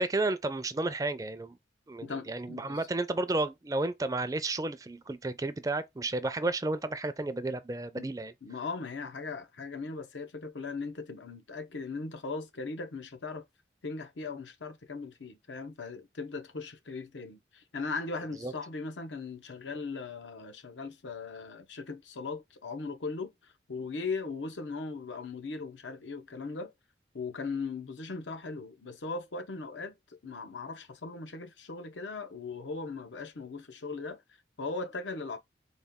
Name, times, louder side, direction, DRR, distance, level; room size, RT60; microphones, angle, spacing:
voice 1, 0.0-1.6 1.9-8.3 18.4-18.5, right 2 dB, 20° right, 0.4 m, -32 dB
voice 2, 2.0-2.9 7.9-8.1 8.4-13.4 13.8-26.7 27.1-34.2 34.6-35.4, left 4 dB, 90° left, 0.8 m, -39 dB
4.1 x 2.3 x 3.5 m
head